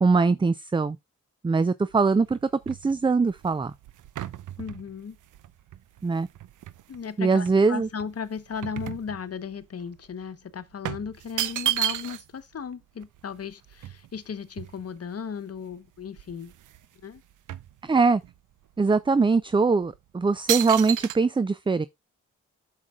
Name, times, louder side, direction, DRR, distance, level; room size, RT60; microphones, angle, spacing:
voice 1, 0.0-1.0 1.4-2.4 2.7-3.7 6.0-6.3 7.2-7.9 17.8-18.2 18.8-21.9, right 4 dB, 15° right, 0.4 m, -22 dB
sound 1, 1.9-7.0 7.5-9.6 9.9-10.1 10.8-12.4 12.7-12.8 13.0-15.2 15.7-15.8 16.1-16.9 17.1-18.4 18.9-19.1 19.7-20.0 20.5-21.2, right 11 dB, 75° right, 0.7 m, -33 dB
voice 2, 4.6-5.2 6.9-16.5 17.0-17.2, left 6 dB, 50° left, 1.1 m, -36 dB
8.2 x 6.6 x 2.4 m
supercardioid pair, 50°, 31 cm